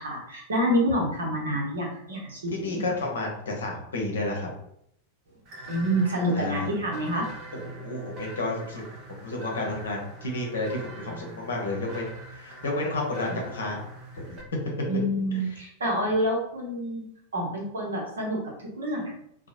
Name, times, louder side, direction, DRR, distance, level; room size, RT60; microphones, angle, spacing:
voice 1, 0.0-2.8 5.7-7.3 14.9-17.0 17.3-18.4 18.8-19.1, equal, 70° right, -1 dB, 0.8 m, -27 dB
voice 2, 2.5-4.5 6.3-6.7 7.5-8.8 9.1-12.0 12.3-13.8 14.1-14.4, left 2 dB, 65° left, 0 dB, 0.7 m, -31 dB
sound 1, 5.5-14.4, right 2 dB, 40° right, 0.7 m, -43 dB
2.8 x 2.2 x 2.6 m, 0.72 s
figure-of-eight pair, 90°, 0 cm